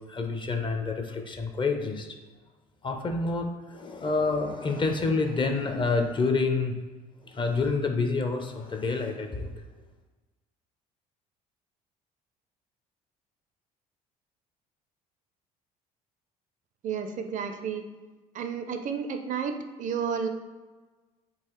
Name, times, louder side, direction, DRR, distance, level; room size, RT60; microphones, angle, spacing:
voice 1, 0.1-2.2 2.8-6.8 7.2-9.6, left 3 dB, 25° left, 5 dB, 0.5 m, -28 dB
voice 2, 16.8-17.8 18.3-20.3, right 6 dB, 45° right, 7 dB, 0.4 m, -31 dB
3.8 x 2.4 x 3.0 m, 1.3 s
hypercardioid pair, 70°, 18 cm